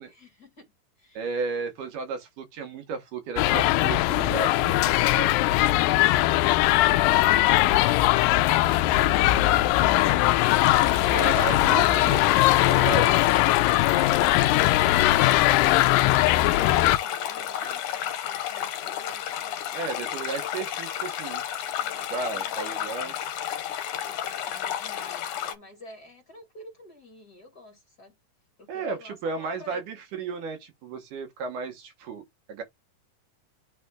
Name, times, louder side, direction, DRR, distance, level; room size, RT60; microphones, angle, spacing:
voice 1, 0.0-1.4 13.7-20.3 21.8-23.2 24.0-28.1 28.6-29.8, left 2 dB, 30° left, 2.3 m, -49 dB
voice 2, 1.1-5.3 11.1-13.2 19.7-21.4 22.1-23.2 28.7-32.2 32.5-32.6, right 4 dB, 70° right, 2.7 m, -34 dB
sound 1, 3.4-17.0, left 16 dB, 85° left, 2.2 m, -20 dB
sound 2, 10.5-25.6, left 10 dB, 70° left, 2.3 m, -32 dB
11.0 x 4.2 x 2.3 m
omnidirectional pair, 3.9 m